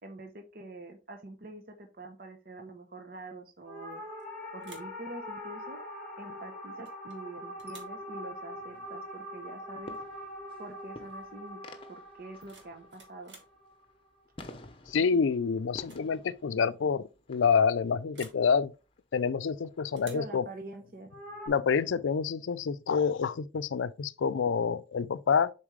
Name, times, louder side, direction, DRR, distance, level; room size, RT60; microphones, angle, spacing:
voice 1, 0.0-4.0 4.5-5.8 6.2-10.0 10.6-11.6 11.9-13.3 20.0-21.1, right 2 dB, 50° right, 0.8 m, -45 dB
sound 1, 3.6-14.2 21.1-21.5, left 1 dB, 10° left, 2.5 m, -43 dB
sound 2, 3.9-4.3 4.6-5.0 6.8-7.2 7.6-8.0 9.9-10.0 10.4-10.7 12.2-13.6 15.1-15.4 15.7-16.1 16.3-16.4 18.1-18.5 20.0-20.4, right 4 dB, 65° right, 1.7 m, -54 dB
sound 3, 7.9-20.0, left 1 dB, 30° left, 0.8 m, -53 dB
voice 2, 14.9-18.7 19.1-20.4 21.5-25.5, left 6 dB, 90° left, 0.4 m, -27 dB
7.2 x 4.3 x 3.2 m
head